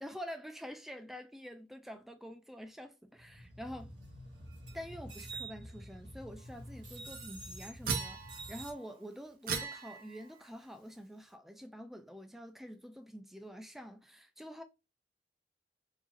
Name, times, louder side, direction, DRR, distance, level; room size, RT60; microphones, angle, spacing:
voice 1, 0.0-3.9 4.7-8.2 8.5-14.6, equal, ahead, 0.4 m, -47 dB
sound 1, 3.1-8.7, right 2 dB, 75° right, 1.3 m, -48 dB
sound 2, 7.9-8.7 9.5-10.4, right 5 dB, 50° right, 0.7 m, -37 dB
3.8 x 2.4 x 3.0 m
head